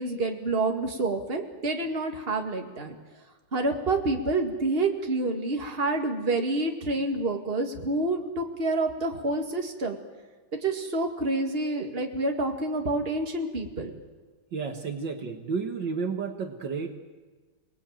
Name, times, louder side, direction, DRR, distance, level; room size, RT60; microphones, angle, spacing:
voice 1, 0.0-3.0 3.5-10.0 10.6-13.9, right 2 dB, 30° right, 3 dB, 2.4 m, -28 dB
voice 2, 14.5-17.0, right 5 dB, 65° right, 5 dB, 2.2 m, -32 dB
29.5 x 19.5 x 9.0 m, 1.4 s
omnidirectional pair, 2.2 m